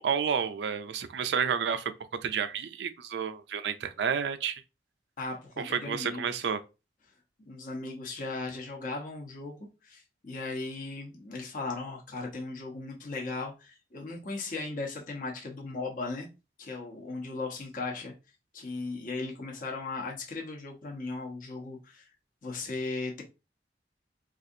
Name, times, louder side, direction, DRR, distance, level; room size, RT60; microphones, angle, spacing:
voice 1, 0.0-1.9 2.2-4.6 5.6-6.6, right 7 dB, 75° right, 0.4 m, -30 dB
voice 2, 5.2-6.4 7.4-16.3 16.6-18.1 18.5-22.1 22.4-23.2, left 3 dB, 50° left, 0.9 m, -37 dB
4.1 x 2.5 x 2.7 m
head